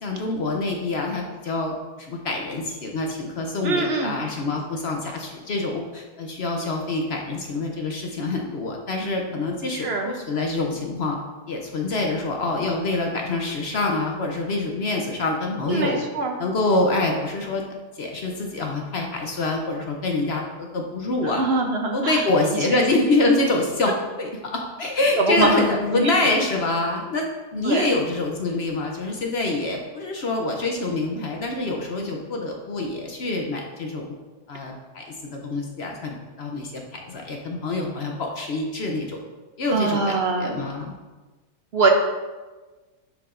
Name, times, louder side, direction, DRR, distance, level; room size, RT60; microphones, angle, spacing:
voice 1, 0.0-11.2 11.5-16.0 16.4-17.6 18.0-21.4 21.9-27.2 27.5-34.1 34.5-39.2 39.6-40.9, left 2 dB, 55° left, 1 dB, 0.8 m, -26 dB
voice 2, 3.6-4.2 9.8-10.1 15.7-16.4 21.2-22.2 25.3-25.6 25.9-26.1 27.7-27.9 39.7-40.5 41.7-41.9, right 3 dB, 60° right, 2 dB, 0.6 m, -23 dB
10.0 x 4.8 x 2.5 m, 1.3 s
omnidirectional pair, 1.7 m